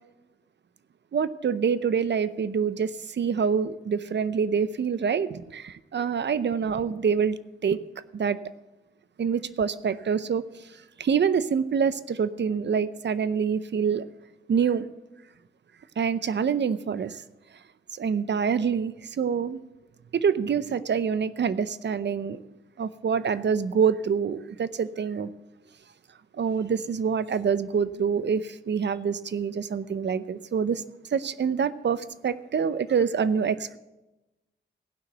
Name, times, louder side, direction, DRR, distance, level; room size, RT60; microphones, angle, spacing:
voice 1, 1.1-7.8 8.1-8.4 9.2-10.4 11.0-14.0 14.5-14.9 16.0-17.2 17.9-19.6 20.1-22.4 22.8-25.3 26.3-30.8 31.1-33.8, right 6 dB, 60° right, 0.7 m, -26 dB
16.5 x 5.9 x 7.9 m
cardioid pair, 65°, 20 cm